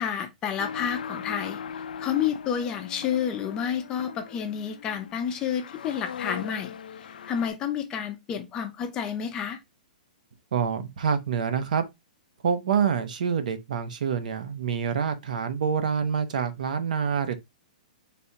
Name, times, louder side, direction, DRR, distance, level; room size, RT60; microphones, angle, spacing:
voice 1, 0.0-1.6 2.0-9.6, left 8 dB, 15° left, 0.5 m, -30 dB
sound 1, 0.6-7.5, left 7 dB, 85° left, 0.5 m, -39 dB
voice 2, 10.5-11.8 12.4-17.3, right 7 dB, 65° right, 0.8 m, -26 dB
4.3 x 3.3 x 2.7 m
hypercardioid pair, 175°, 5 cm